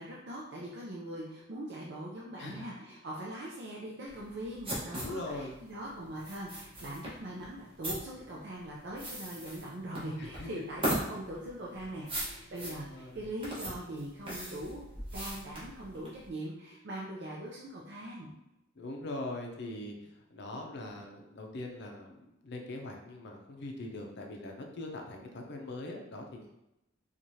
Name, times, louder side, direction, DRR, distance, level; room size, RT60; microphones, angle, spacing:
voice 1, 0.0-14.9 15.1-18.3, right 1 dB, 60° right, -4 dB, 0.5 m, -41 dB
voice 2, 2.4-2.7 4.9-5.6 10.2-10.5 12.3-13.3 18.8-26.4, left 2 dB, 60° left, 2 dB, 0.5 m, -42 dB
sound 1, 4.1-16.3, right 1 dB, 25° right, 1.2 m, -39 dB
4.6 x 2.4 x 2.7 m, 0.89 s
head